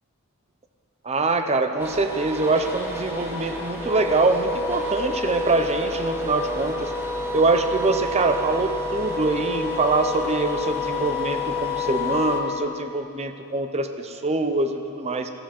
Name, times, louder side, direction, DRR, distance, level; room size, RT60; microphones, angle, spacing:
voice 1, 1.0-6.9 7.3-15.3, right 3 dB, 30° right, 7 dB, 0.6 m, -24 dB
sound 1, 1.8-12.4, left 2 dB, 10° right, 1.2 m, -29 dB
15.0 x 12.0 x 4.3 m, 2.8 s
head